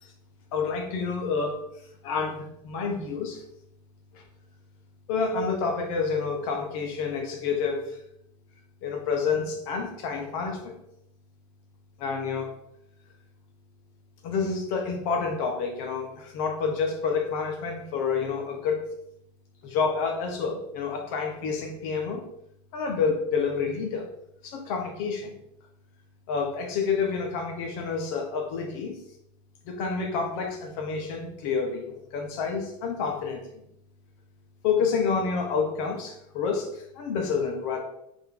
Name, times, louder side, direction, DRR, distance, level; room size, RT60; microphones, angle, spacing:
voice 1, 0.5-1.6 2.0-3.4 4.1-4.2 5.1-7.8 8.8-10.7 12.0-12.5 14.2-18.9 19.6-22.2 22.7-24.1 24.4-25.3 26.3-29.0 29.6-33.5 34.6-37.8, left 5 dB, 60° left, 3 dB, 1.5 m, -28 dB
5.8 x 4.4 x 3.7 m, 0.78 s
supercardioid pair, 145°, 18 cm